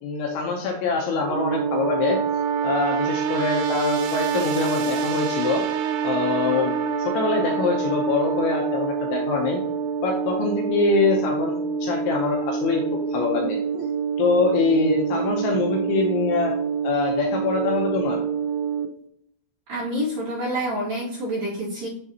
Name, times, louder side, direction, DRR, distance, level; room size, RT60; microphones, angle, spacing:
voice 1, 0.0-2.2 2.6-5.6 6.0-9.6 10.0-13.6 14.2-16.5 16.8-18.2, left 4 dB, 75° left, 0 dB, 2.9 m, -24 dB
sound 1, 1.2-18.9, right 6 dB, 85° right, 2.6 m, -26 dB
voice 2, 19.7-21.9, equal, 50° right, -5 dB, 3.3 m, -27 dB
12.0 x 4.0 x 2.9 m, 0.73 s
omnidirectional pair, 6.0 m